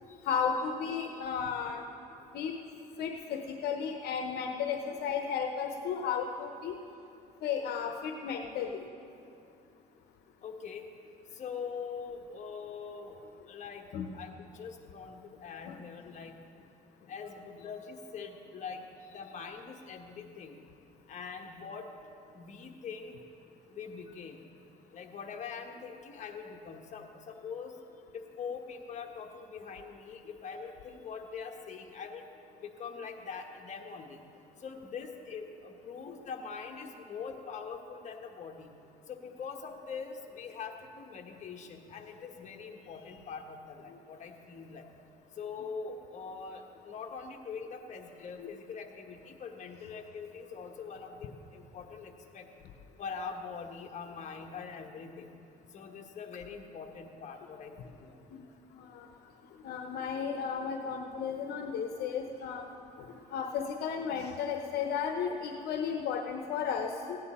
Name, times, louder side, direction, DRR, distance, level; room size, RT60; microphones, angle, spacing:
voice 1, 0.3-1.8 2.3-2.5 3.0-6.7 7.4-8.8 13.9-14.1 15.6-15.8 36.1-36.2 48.4-48.5 58.3-58.4 58.8-59.1 59.6-62.7 63.0-63.1 63.3-67.2, left 6 dB, 70° left, 4 dB, 0.8 m, -34 dB
voice 2, 10.4-10.9 11.3-13.9 14.1-16.4 17.1-20.6 21.1-21.9 22.3-23.2 23.7-24.4 24.9-27.7 28.1-32.2 32.6-34.2 34.6-38.7 39.1-44.9 45.4-52.5 53.0-55.3 55.7-58.2 62.0-62.1, left 5 dB, 45° left, 3 dB, 1.2 m, -43 dB
16.0 x 9.4 x 4.2 m, 2.6 s
cardioid pair, 110°, 17 cm